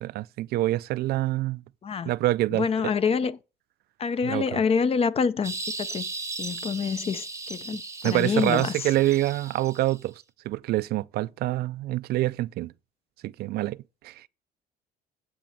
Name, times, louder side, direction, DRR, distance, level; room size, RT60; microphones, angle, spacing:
voice 1, 0.0-1.6 2.0-2.7 4.2-4.6 8.0-10.1 10.5-12.7 13.2-13.8 14.0-14.1, right 16 dB, 70° right, 0.4 m, -26 dB
voice 2, 2.5-3.4 4.0-6.1 6.4-8.9, left 6 dB, 35° left, 0.7 m, -27 dB
sound 1, 5.4-10.0, right 3 dB, 15° right, 0.8 m, -37 dB
9.5 x 4.2 x 7.3 m
cardioid pair, 110°, 17 cm